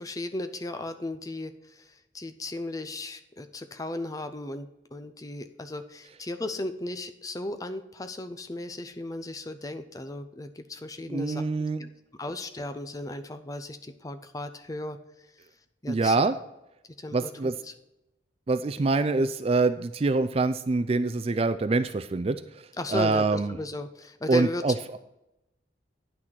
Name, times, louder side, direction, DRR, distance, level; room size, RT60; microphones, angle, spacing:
voice 1, 0.0-11.4 12.2-15.0 15.8-16.3 17.0-17.7 22.8-24.6, left 1 dB, 20° left, 10 dB, 0.6 m, -36 dB
voice 2, 11.1-11.8 15.9-16.3 17.1-17.5 18.5-22.4 22.9-23.6 24.3-25.0, right 3 dB, 30° right, 11 dB, 0.4 m, -25 dB
9.8 x 6.2 x 4.4 m, 0.90 s
head